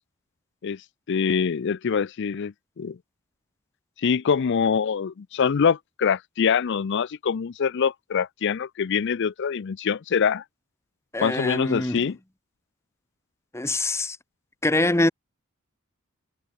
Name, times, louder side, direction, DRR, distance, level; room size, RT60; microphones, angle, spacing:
voice 1, 1.1-3.0 4.0-10.4 11.2-12.2, left 6 dB, 55° left, 0.4 m, -24 dB
voice 2, 11.1-12.0 13.5-14.2 14.6-15.1, left 2 dB, 10° left, 1.1 m, -24 dB
head